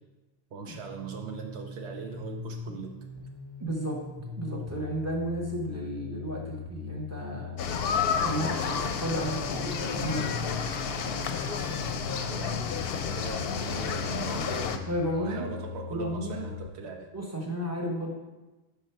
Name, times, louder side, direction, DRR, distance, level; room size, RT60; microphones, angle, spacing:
voice 1, 0.5-2.9 12.3-14.9 15.2-17.1, right 5 dB, 80° right, 3 dB, 0.9 m, -40 dB
sound 1, 0.7-16.7, left 6 dB, 25° left, 0.9 m, -41 dB
voice 2, 3.6-4.0 4.4-7.6 8.2-10.5 14.9-15.5 15.9-16.5 17.1-18.1, right 1 dB, 15° right, -2 dB, 1.0 m, -33 dB
sound 2, 7.6-14.8, left 6 dB, 70° left, 0.7 m, -31 dB
5.4 x 4.9 x 4.5 m, 1.1 s
omnidirectional pair, 1.1 m